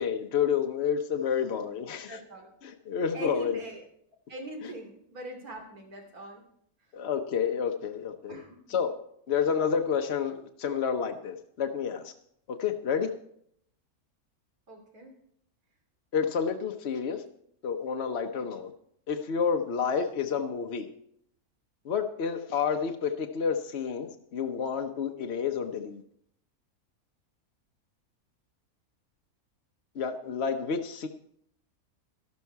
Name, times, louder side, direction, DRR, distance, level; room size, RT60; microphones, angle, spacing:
voice 1, 0.0-2.2 2.6-3.6 4.6-4.7 6.9-8.3 8.7-8.9 9.3-12.0 12.5-13.1 16.1-17.2 17.6-18.7 19.1-20.9 21.8-26.0 29.9-31.1, left 6 dB, 50° left, 4 dB, 1.0 m, -29 dB
voice 2, 2.1-2.5 3.0-3.8 4.3-6.4 8.3-8.6 14.7-15.1, right 1 dB, 80° right, 3 dB, 3.3 m, -42 dB
12.5 x 12.5 x 4.6 m, 0.70 s
omnidirectional pair, 1.5 m